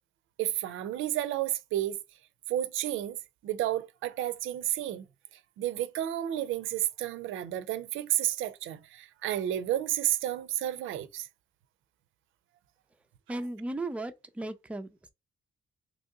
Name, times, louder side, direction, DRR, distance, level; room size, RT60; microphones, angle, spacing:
voice 1, 0.4-2.0 2.5-3.2 3.4-5.1 5.6-11.3, right 13 dB, 85° right, 0.5 m, -31 dB
voice 2, 13.3-15.1, right 2 dB, 5° right, 0.4 m, -36 dB
3.0 x 2.7 x 3.6 m
cardioid pair, 90°, 20 cm